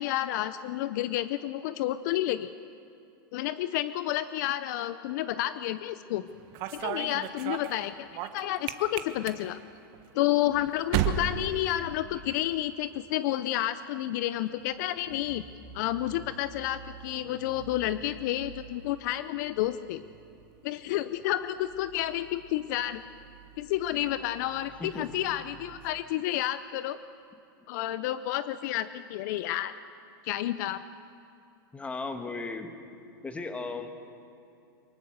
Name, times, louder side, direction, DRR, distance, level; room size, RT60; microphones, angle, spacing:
voice 1, 0.0-2.5 3.3-6.3 6.7-8.1 8.3-9.6 10.1-15.5 15.7-20.0 20.6-23.0 23.6-27.0 27.7-29.7 30.2-30.8, left 14 dB, 55° left, 14 dB, 0.6 m, -30 dB
sound 1, 6.3-12.5 12.7-13.3 14.4-26.0, right 10 dB, 45° right, 1.3 m, -39 dB
voice 2, 31.7-32.7 33.2-33.9, left 3 dB, 10° left, 7 dB, 1.5 m, -36 dB
23.5 x 21.0 x 6.6 m, 2.7 s
hypercardioid pair, 135°, 12 cm